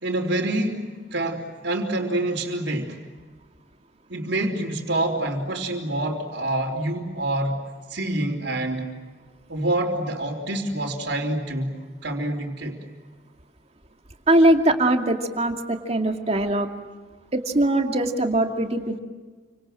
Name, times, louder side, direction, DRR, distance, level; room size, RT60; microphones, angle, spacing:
voice 1, 0.0-3.0 4.1-7.6 7.9-8.9 9.5-12.8, right 1 dB, 70° right, -7 dB, 3.8 m, -27 dB
voice 2, 14.3-16.7 17.3-19.0, right 1 dB, 35° right, 4 dB, 2.5 m, -21 dB
29.5 x 26.0 x 7.8 m, 1.4 s
head